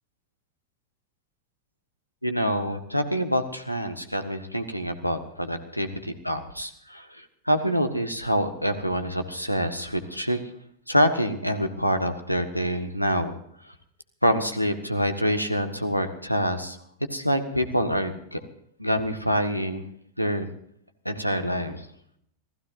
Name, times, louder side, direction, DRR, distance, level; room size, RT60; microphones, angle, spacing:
voice 1, 2.2-10.4 10.9-13.3 13.7-13.8 14.2-16.8 17.1-18.4 18.8-19.8 20.2-20.5 21.0-21.9, equal, 90° left, 7 dB, 1.6 m, -26 dB
27.5 x 16.5 x 2.7 m, 0.70 s
figure-of-eight pair, 90°, 0 cm